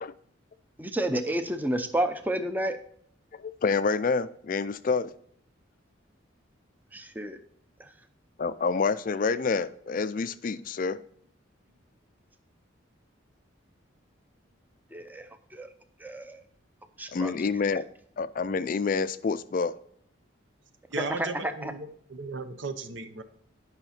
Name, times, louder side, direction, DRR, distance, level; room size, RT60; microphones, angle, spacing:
voice 1, 0.8-2.8 6.9-7.4 7.8-7.9 14.9-15.2 15.5-15.7 16.0-16.4 17.0-17.3 21.0-21.7, right 1 dB, 10° right, 0.6 m, -30 dB
voice 2, 3.3-5.1 8.4-11.0 17.1-17.9 18.2-19.8, left 4 dB, 45° left, 0.3 m, -28 dB
voice 3, 20.9-23.2, right 3 dB, 65° right, 0.8 m, -36 dB
10.5 x 5.6 x 4.2 m
head